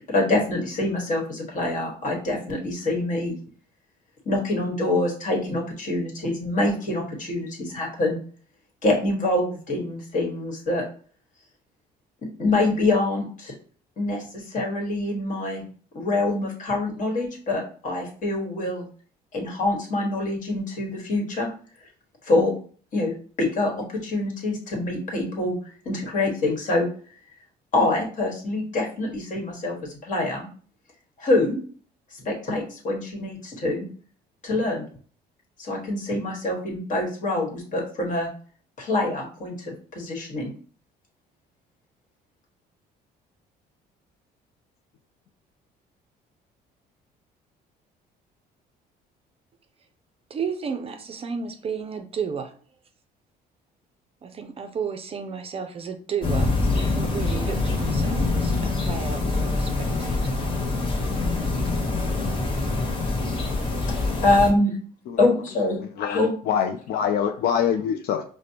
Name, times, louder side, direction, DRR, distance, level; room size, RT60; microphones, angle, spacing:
voice 1, 0.1-3.4 4.2-8.2 8.8-10.8 12.4-13.5 14.0-15.6 15.9-18.8 19.3-21.5 22.2-22.5 22.9-23.1 23.4-25.5 25.8-26.9 27.7-30.5 31.2-31.6 32.1-33.9 34.4-34.8 35.6-38.3 38.8-40.5 64.2-64.7 65.2-65.8 66.1-66.3, left 2 dB, 50° left, 0 dB, 1.4 m, -25 dB
voice 2, 50.3-52.5 54.2-60.4, right 6 dB, 35° right, 7 dB, 0.5 m, -33 dB
sound 1, 56.2-64.5, left 3 dB, 30° left, 1.0 m, -25 dB
voice 3, 65.8-68.2, left 8 dB, 70° left, 6 dB, 0.4 m, -25 dB
5.0 x 2.1 x 2.8 m, 0.43 s
cardioid pair, 110°, 17 cm